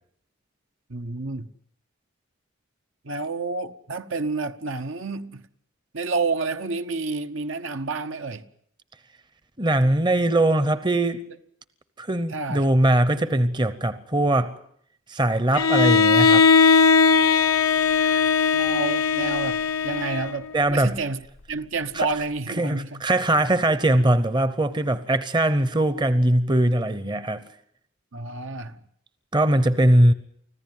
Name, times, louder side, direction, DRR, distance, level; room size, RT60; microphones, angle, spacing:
voice 1, 0.9-1.5 3.0-5.5 5.9-8.4 12.3-12.7 18.5-23.0 28.1-28.8, right 3 dB, 70° right, 1.0 m, -29 dB
voice 2, 9.6-11.2 12.0-14.5 15.1-16.5 17.9-18.5 20.5-21.0 21.9-22.1 22.6-27.4 29.3-30.1, right 1 dB, 20° right, 0.8 m, -21 dB
Bowed string instrument, 15.5-20.6, left 5 dB, 90° left, 0.9 m, -19 dB
25.0 x 15.5 x 9.4 m
head